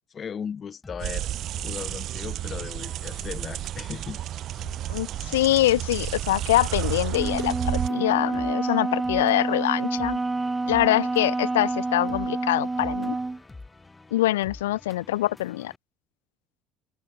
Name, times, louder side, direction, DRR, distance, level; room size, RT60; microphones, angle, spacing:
voice 1, 0.1-1.3 1.6-4.2 4.5-4.6, left 7 dB, 40° left, 5.1 m, -37 dB
sound 1, 0.8-15.8, left 3 dB, 20° left, 3.9 m, -47 dB
sound 2, 1.0-7.9, right 13 dB, 60° right, 1.7 m, -31 dB
voice 2, 4.9-10.2 10.7-13.2 14.1-15.7, left 15 dB, 85° left, 0.7 m, -24 dB
Wind instrument woodwind instrument, 7.1-13.4, right 3 dB, 15° right, 0.4 m, -28 dB
hypercardioid pair, 65°, 0 cm